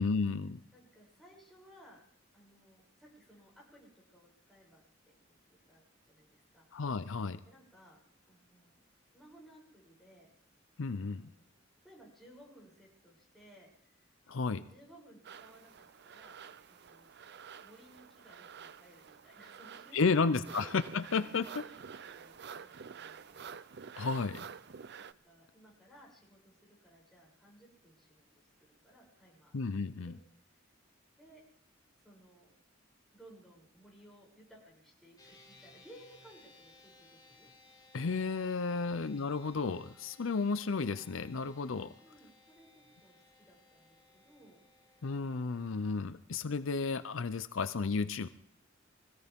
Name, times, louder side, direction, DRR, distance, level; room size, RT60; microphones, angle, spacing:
voice 1, 0.0-0.6 6.7-7.4 10.8-11.3 14.3-14.6 19.9-21.4 24.0-24.5 29.5-30.1 37.9-41.9 45.0-48.3, left 4 dB, 80° left, 12 dB, 0.6 m, -32 dB
voice 2, 0.7-2.0 2.3-5.1 5.7-6.7 7.4-8.0 8.3-8.8 9.1-10.3 11.0-11.5 11.8-14.1 14.7-16.4 16.7-17.1 17.6-20.7 21.1-23.5 25.0-29.6 30.1-30.2 31.2-31.4 32.0-32.5 33.1-37.5 38.8-39.2 42.0-44.6, right 1 dB, ahead, -4 dB, 7.4 m, -59 dB
sound 1, 15.2-25.1, right 7 dB, 60° right, 0.6 m, -49 dB
sound 2, 35.2-46.0, left 3 dB, 20° left, 3.8 m, -62 dB
24.5 x 16.5 x 3.6 m, 0.72 s
head